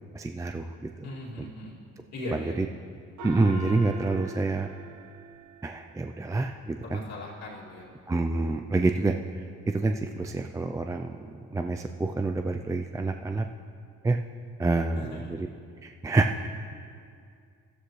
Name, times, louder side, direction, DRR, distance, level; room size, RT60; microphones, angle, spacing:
voice 1, 0.1-0.9 1.4-1.5 2.3-2.7 3.2-4.7 5.6-7.0 8.1-11.2 11.4-13.5 14.0-14.2 14.6-15.5 15.8-16.5, right 3 dB, 10° right, 5 dB, 0.4 m, -27 dB
voice 2, 1.0-1.7 2.1-2.6 6.8-7.9 15.0-15.4, left 1 dB, 65° left, -5 dB, 2.5 m, -39 dB
Gong, 3.2-6.1, equal, 70° right, 1.4 m, -42 dB
13.0 x 13.0 x 3.2 m, 2.2 s
cardioid pair, 90°, 30 cm